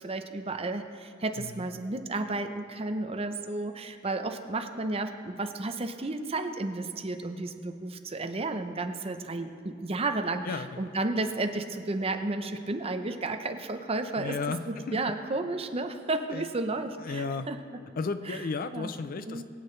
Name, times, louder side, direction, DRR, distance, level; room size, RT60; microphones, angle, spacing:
voice 1, 0.0-14.4 14.9-17.6 18.3-18.4 18.7-18.9 19.3-19.4, right 2 dB, 30° right, 7 dB, 0.7 m, -32 dB
voice 2, 1.4-1.7 10.4-11.0 14.2-15.1 16.3-16.4 17.0-17.5 18.0-19.4, left 4 dB, 45° left, 11 dB, 0.5 m, -34 dB
22.0 x 8.5 x 3.2 m, 2.4 s
head